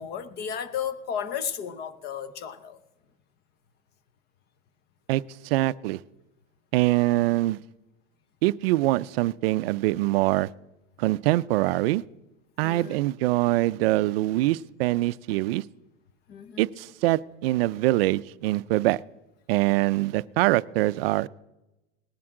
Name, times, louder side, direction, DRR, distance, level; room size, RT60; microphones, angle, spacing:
voice 1, 0.0-2.8 12.6-13.0 16.3-16.6, left 8 dB, 25° left, 0.8 m, -34 dB
voice 2, 5.1-6.0 6.7-7.6 8.4-10.5 11.0-12.0 12.6-15.6 16.6-19.0 19.5-21.3, right 17 dB, 55° right, 0.5 m, -24 dB
19.0 x 10.5 x 3.7 m
supercardioid pair, 155°, 36 cm